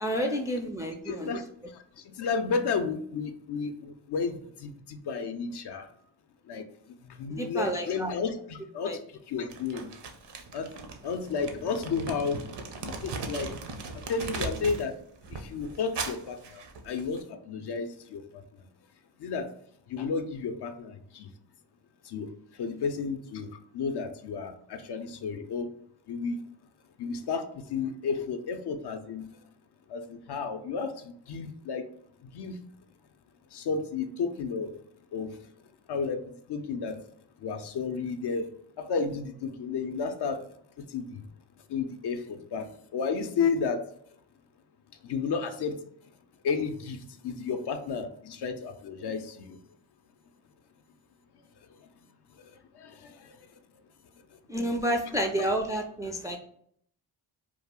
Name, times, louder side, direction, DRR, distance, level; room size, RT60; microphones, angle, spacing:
voice 1, 0.0-1.3 7.4-8.1 8.9-9.0 54.5-56.4, equal, 10° right, 2 dB, 0.3 m, -29 dB
voice 2, 1.1-1.4 2.2-5.8 6.5-6.6 7.2-9.0 9.3-9.9 10.5-10.7 11.0-12.4 13.0-13.5 14.1-14.9 15.3-16.4 16.9-18.2 19.2-19.5 19.9-20.9 21.2-21.3 22.1-22.3 22.6-23.5 23.7-25.7 26.1-26.4 27.0-27.4 27.7-29.3 29.9-30.9 31.3-31.8 32.3-32.6 33.5-34.7 35.1-35.3 35.9-36.2 36.5-37.0 37.4-38.5 38.9-40.4 40.9-41.1 41.7-42.7 42.9-43.8 45.1-45.8 46.4-47.0 47.2-49.2 55.2-55.3, left 5 dB, 60° left, 6 dB, 0.5 m, -31 dB
Crumpling crinkling, 9.5-14.9 15.2-17.2, right 4 dB, 60° right, 0.6 m, -38 dB
2.3 x 2.0 x 3.5 m, 0.65 s
supercardioid pair, 40°, 47 cm